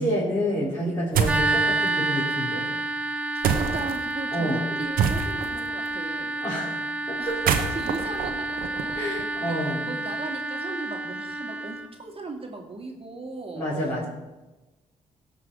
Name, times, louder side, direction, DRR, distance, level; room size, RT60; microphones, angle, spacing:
voice 1, 0.0-2.7 4.3-4.6 6.4-6.8 7.1-7.6 8.9-9.9 13.5-14.1, equal, 20° left, -9 dB, 4.2 m, -28 dB
sound 1, 1.1-1.5 3.4-4.0 5.0-5.6 7.3-9.2, right 7 dB, 75° right, 1.0 m, -26 dB
sound 2, 1.2-11.9, right 2 dB, 10° right, 1.4 m, -29 dB
voice 2, 3.3-6.4 7.2-7.4 7.7-9.5 9.8-13.6, right 3 dB, 40° right, 1 dB, 2.1 m, -37 dB
16.5 x 5.6 x 4.8 m, 1.1 s
supercardioid pair, 55°, 15 cm